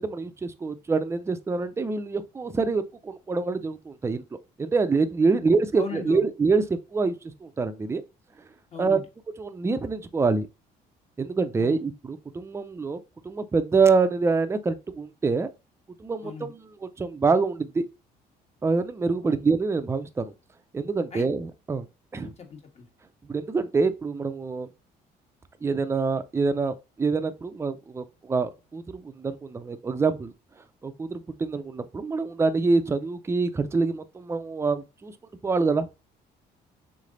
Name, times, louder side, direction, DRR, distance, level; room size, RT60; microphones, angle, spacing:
voice 1, 0.0-4.2 4.6-7.1 7.4-8.0 8.8-9.0 9.4-10.5 11.2-13.0 13.2-15.5 16.0-16.6 17.0-17.8 18.6-20.3 20.7-21.9 22.1-22.3 23.2-24.7 25.6-30.3 30.8-35.1 35.4-35.9, right 4 dB, 15° right, 0.5 m, -25 dB
voice 2, 5.8-6.3 8.7-9.0 11.6-11.8 16.2-16.5 19.2-19.4 21.1-21.3 22.2-22.9, left 5 dB, 40° left, 1.4 m, -39 dB
3.7 x 3.3 x 3.8 m
cardioid pair, 110°, 17 cm